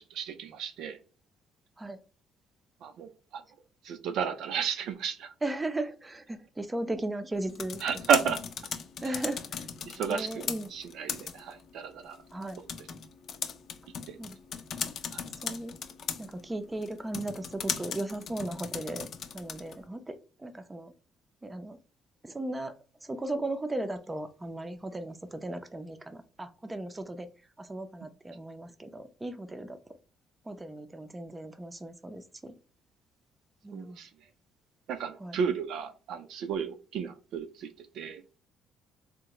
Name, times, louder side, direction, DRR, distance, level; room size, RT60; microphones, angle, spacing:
voice 1, 0.1-1.0 2.8-3.4 3.8-5.3 7.8-8.4 9.1-9.2 9.9-10.4 10.7-12.2 14.1-14.2 15.1-15.2 33.7-34.1 34.9-38.4, right 7 dB, 75° right, 0.4 m, -32 dB
voice 2, 5.4-7.8 9.0-9.6 10.1-10.7 12.3-12.6 14.2-14.4 15.4-15.8 16.2-19.1 19.3-20.9 21.4-21.8 22.2-22.8 23.0-27.3 27.6-30.0 30.5-32.5 33.6-34.0 35.2-35.4, right 2 dB, 15° right, 0.5 m, -36 dB
sound 1, 7.3-19.9, left 7 dB, 60° left, 0.5 m, -39 dB
3.6 x 2.1 x 2.9 m
cardioid pair, 100°, 0 cm